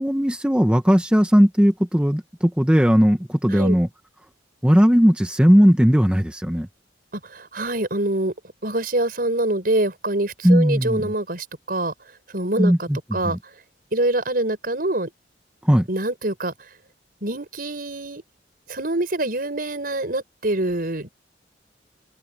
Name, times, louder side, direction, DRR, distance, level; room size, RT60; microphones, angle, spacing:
voice 1, 0.0-3.9 4.6-6.7 10.4-11.1 12.6-13.4 15.6-15.9, equal, 5° right, 1.1 m, -17 dB
voice 2, 7.2-8.3 8.6-11.9 12.3-13.4 13.9-15.1 15.9-16.5 17.2-18.2 18.7-21.1, right 1 dB, 55° right, 6.0 m, -25 dB
head